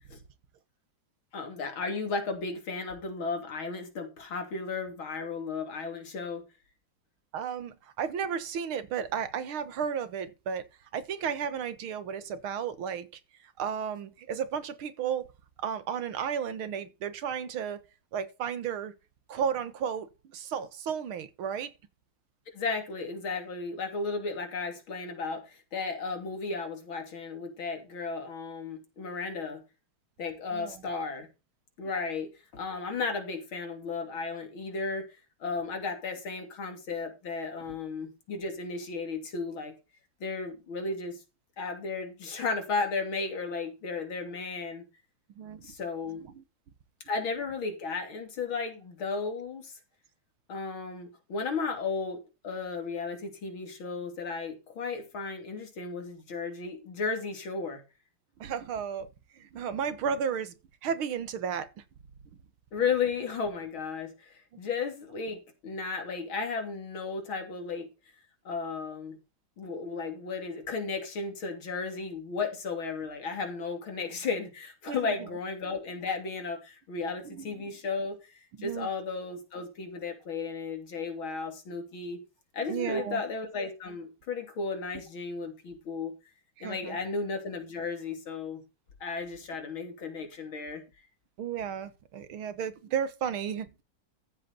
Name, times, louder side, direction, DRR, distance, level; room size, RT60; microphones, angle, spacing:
voice 1, 1.3-6.4 22.5-29.6 30.2-31.3 31.8-35.1 35.4-39.7 40.2-41.2 41.6-44.8 45.6-46.2 47.1-49.8 50.5-57.8 62.7-67.9 68.5-69.2 69.6-82.2 82.5-86.1 86.6-88.6 89.0-90.8, left 4 dB, 75° left, 3.6 m, -34 dB
voice 2, 7.3-10.7 10.9-13.2 13.6-15.3 15.6-17.8 18.1-18.9 19.3-21.7 30.5-30.8 45.4-45.7 46.3-46.4 58.4-59.1 59.3-60.5 60.8-61.7 64.5-64.6 74.9-75.2 77.3-77.7 78.6-78.9 82.7-83.2 86.6-87.0 91.4-93.7, right 7 dB, 85° right, 2.2 m, -33 dB
14.0 x 8.0 x 4.2 m
omnidirectional pair, 2.3 m